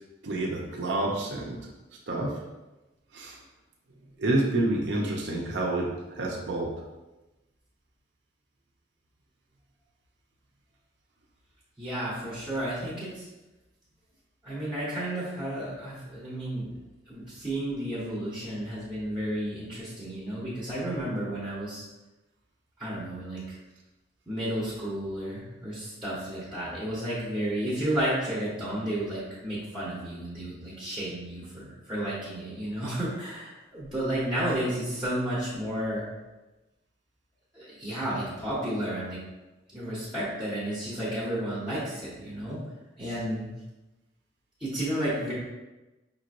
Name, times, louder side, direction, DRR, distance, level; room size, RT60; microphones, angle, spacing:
voice 1, 0.2-1.7 2.1-2.4 3.1-3.4 4.2-6.7, right 2 dB, 70° right, -2 dB, 0.7 m, -28 dB
voice 2, 11.8-13.3 14.4-16.7 17.1-21.8 22.8-23.4 24.3-36.0 37.5-39.2 39.7-42.6 43.0-43.5 44.6-45.3, right 1 dB, 5° right, -9 dB, 1.0 m, -32 dB
5.4 x 3.0 x 2.5 m, 1.1 s
head